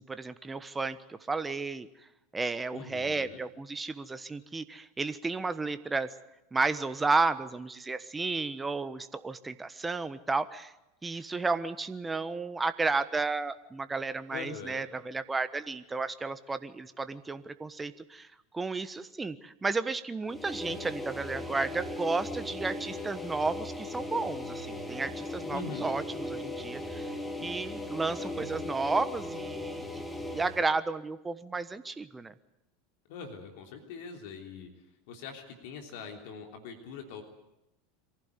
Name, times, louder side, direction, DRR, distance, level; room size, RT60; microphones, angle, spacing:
voice 1, 0.0-1.9 2.3-6.1 6.5-10.7 11.0-18.3 18.5-27.1 27.4-30.0 30.3-32.3, right 3 dB, 15° right, 13 dB, 1.2 m, -32 dB
voice 2, 2.7-3.4 14.3-14.9 25.5-26.1 33.1-34.7 35.1-37.2, left 5 dB, 65° left, 4 dB, 3.3 m, -42 dB
sound 1, 20.3-30.7, left 1 dB, 5° left, 2.6 m, -38 dB
23.5 x 15.5 x 9.7 m, 0.91 s
hypercardioid pair, 80°, 0 cm